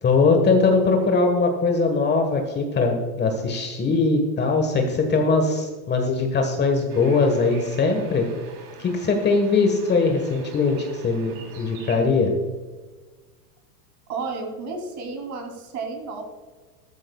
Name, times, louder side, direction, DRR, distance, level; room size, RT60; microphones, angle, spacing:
voice 1, 0.0-8.3 8.8-12.3, left 3 dB, 20° left, 4 dB, 1.4 m, -21 dB
sound 1, 6.9-12.0, right 6 dB, 70° right, 3.4 m, -45 dB
voice 2, 14.1-16.2, right 4 dB, 35° right, 3 dB, 3.1 m, -32 dB
14.0 x 13.0 x 2.3 m, 1.3 s
hypercardioid pair, 120°, 47 cm